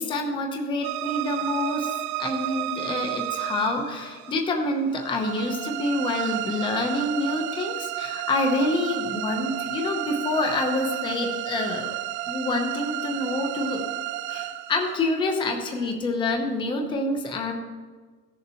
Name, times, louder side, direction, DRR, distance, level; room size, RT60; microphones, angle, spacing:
voice 1, 0.0-12.0 12.3-13.9 14.3-17.5, left 2 dB, 10° left, 3 dB, 0.8 m, -27 dB
sound 1, 0.8-15.9, right 14 dB, 35° right, 0.4 m, -32 dB
15.0 x 7.0 x 4.4 m, 1.4 s
supercardioid pair, 155°, 49 cm